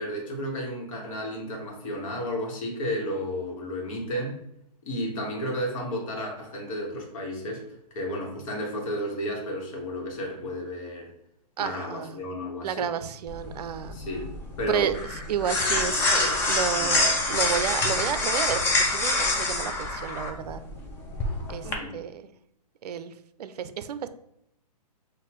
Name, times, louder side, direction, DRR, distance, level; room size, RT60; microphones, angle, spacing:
voice 1, 0.0-4.4 4.8-7.6 7.9-11.1 11.6-12.9 13.9-14.3 14.6-14.9 16.8-16.9 21.6-21.9, equal, 50° left, 0 dB, 1.4 m, -32 dB
voice 2, 11.6-12.2 12.6-14.0 14.7-15.0 15.3-20.6 21.5-22.3 22.8-23.1 23.4-24.1, right 8 dB, 70° right, 12 dB, 0.4 m, -31 dB
sound 1, 13.3-21.7, left 2 dB, 10° left, 0.4 m, -26 dB
5.8 x 2.6 x 3.0 m, 0.76 s
hypercardioid pair, 145°, 21 cm